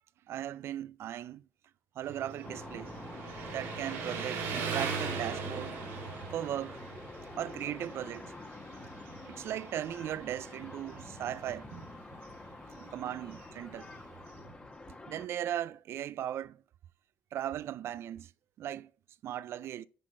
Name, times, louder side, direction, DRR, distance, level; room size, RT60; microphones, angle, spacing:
voice 1, 0.3-1.5 2.0-2.9 3.5-5.8 6.3-6.8 7.4-8.3 9.3-11.7 12.8-13.9 15.1-16.6 17.3-18.3 18.6-18.9 19.2-19.9, right 11 dB, 60° right, 0.3 m, -37 dB
Motorcycle, 2.0-14.6, right 5 dB, 90° right, 2.3 m, -41 dB
sound 1, 2.4-15.3, left 2 dB, 20° left, 1.1 m, -47 dB
10.0 x 4.5 x 3.8 m
supercardioid pair, 75°, 5 cm